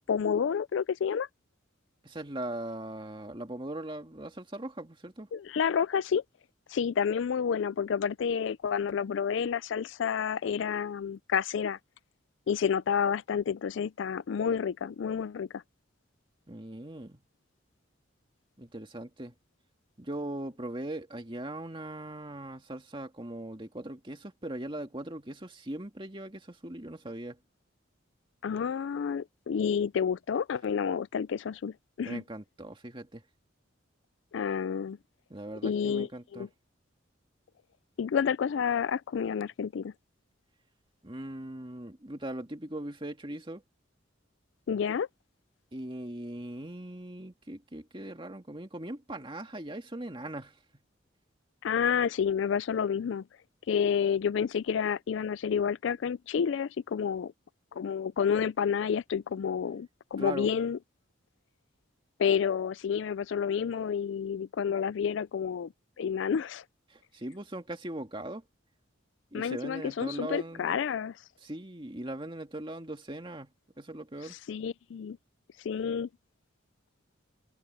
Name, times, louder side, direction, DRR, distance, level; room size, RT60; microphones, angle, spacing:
voice 1, 0.1-1.3 5.3-6.2 6.7-11.8 12.5-15.6 28.4-32.2 34.3-35.0 35.6-36.5 38.0-39.9 44.7-45.1 51.6-53.2 53.7-57.3 57.7-60.8 62.2-65.7 66.0-66.6 69.3-71.2 74.5-75.2 75.6-76.1, left 7 dB, 65° left, 0.4 m, -29 dB
voice 2, 2.0-5.3 16.5-17.2 18.6-19.3 20.0-27.4 32.0-33.2 35.3-36.5 41.0-43.6 45.7-50.6 60.2-60.5 66.9-68.4 69.3-70.8 71.4-74.4, right 1 dB, 25° right, 2.3 m, -40 dB
head